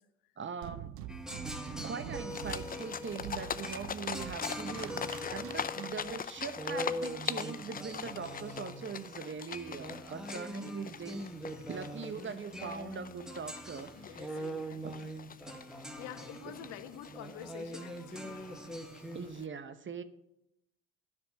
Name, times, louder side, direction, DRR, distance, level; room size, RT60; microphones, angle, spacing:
voice 1, 0.4-0.9 1.8-11.2 11.7-14.4 14.8-15.0 16.5-16.6 19.1-20.0, right 6 dB, 30° right, 12 dB, 0.9 m, -41 dB
sound 1, 0.6-6.1, right 11 dB, 80° right, 0.8 m, -46 dB
sound 2, 1.1-19.3, equal, ahead, 1.3 m, -43 dB
sound 3, 2.3-19.4, left 7 dB, 25° left, 0.5 m, -43 dB
voice 2, 14.0-15.0 15.6-18.5, left 10 dB, 70° left, 11 dB, 1.0 m, -48 dB
10.0 x 6.1 x 7.3 m, 0.84 s
hypercardioid pair, 60°, 39 cm